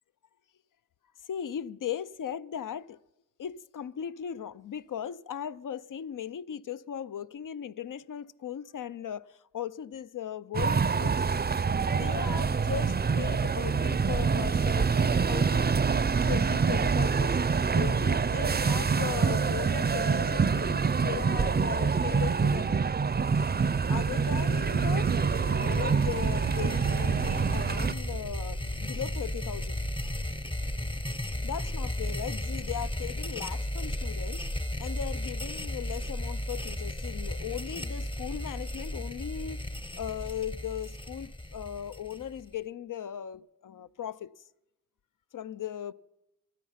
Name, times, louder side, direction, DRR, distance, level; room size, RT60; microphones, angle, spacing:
voice 1, 1.3-3.0 3.4-11.2 11.9-15.7 16.3-17.5 17.7-22.8 23.9-25.1 25.4-29.8 31.4-34.4 34.8-44.3 45.3-45.9, left 9 dB, 75° left, 0.5 m, -38 dB
sound 1, 10.5-27.9, right 5 dB, 30° right, 0.5 m, -26 dB
sound 2, 23.5-42.5, left 1 dB, 15° left, 0.7 m, -35 dB
sound 3, 24.6-31.6, right 8 dB, 85° right, 0.7 m, -38 dB
25.5 x 9.3 x 5.7 m
wide cardioid pair, 70°, 32 cm